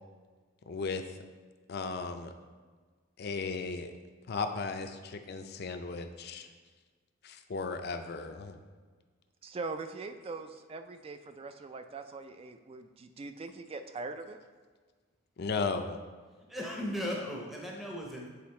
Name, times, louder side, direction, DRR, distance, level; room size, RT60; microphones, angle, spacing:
voice 1, 0.7-1.0 1.7-2.3 3.2-3.9 4.3-6.5 7.2-8.5 15.4-16.0, left 4 dB, 55° left, 7 dB, 0.5 m, -35 dB
voice 2, 9.4-14.4, right 3 dB, 30° right, 8 dB, 0.3 m, -42 dB
voice 3, 16.5-18.3, equal, ahead, -2 dB, 0.6 m, -36 dB
7.7 x 3.5 x 4.2 m, 1.5 s
head